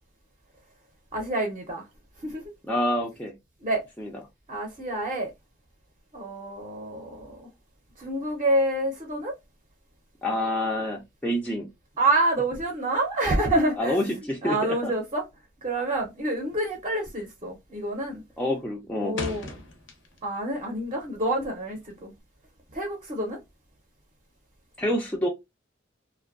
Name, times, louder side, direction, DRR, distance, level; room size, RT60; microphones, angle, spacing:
voice 1, 1.1-1.8 2.2-2.4 3.6-3.8 4.5-5.3 6.1-7.5 8.0-9.3 12.0-14.0 14.4-15.2 15.6-18.2 19.0-19.5 20.2-22.1 22.7-23.4, right 1 dB, 30° right, 0.6 m, -27 dB
voice 2, 2.7-3.3 4.0-4.1 10.2-11.7 13.8-14.9 18.4-19.2 24.8-25.3, left 1 dB, 5° left, 0.4 m, -27 dB
sound 1, 15.9-16.3 16.6-17.0 17.3-17.8 18.1-20.4 20.7-22.2, left 2 dB, 90° left, 0.7 m, -39 dB
2.5 x 2.2 x 2.4 m
head